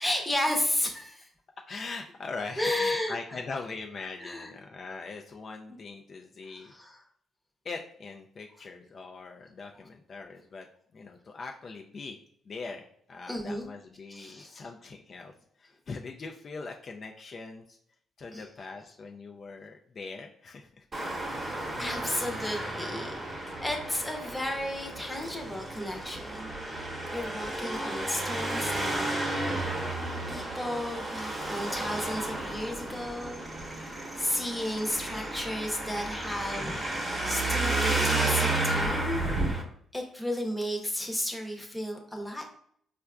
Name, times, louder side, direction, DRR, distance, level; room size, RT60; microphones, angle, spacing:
voice 1, 0.0-1.3 2.6-3.2 4.2-4.5 6.5-7.0 13.3-13.7 14.1-14.5 18.3-18.5 21.8-29.1 30.3-36.8 37.2-39.2 39.9-42.4, left 1 dB, 5° left, 2 dB, 0.8 m, -33 dB
voice 2, 1.7-6.7 7.6-10.7 10.9-12.2 12.5-17.8 18.2-20.9, left 4 dB, 45° left, 2 dB, 0.4 m, -41 dB
Traffic noise roadway noise, 20.9-39.6, right 2 dB, 25° right, 1.0 m, -32 dB
4.4 x 2.4 x 2.2 m, 0.65 s
cardioid pair, 90°, 0 cm